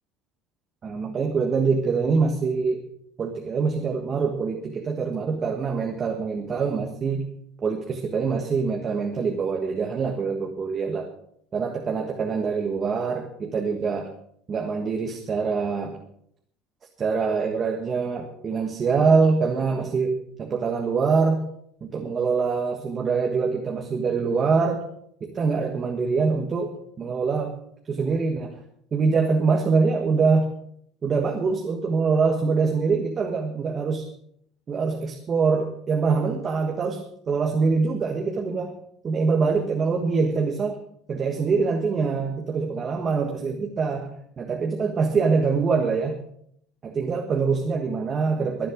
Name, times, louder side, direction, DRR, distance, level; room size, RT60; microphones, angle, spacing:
voice 1, 0.8-2.8 3.2-7.3 7.6-11.1 11.5-14.1 14.5-15.9 17.0-21.5 21.8-24.8 25.3-27.6 27.9-28.5 28.9-30.5 31.0-34.0 34.7-38.7 39.0-40.8 41.1-46.2 46.8-48.7, right 4 dB, 25° right, 2 dB, 1.5 m, -24 dB
22.5 x 7.7 x 5.2 m, 0.70 s
cardioid pair, 150°, 0 cm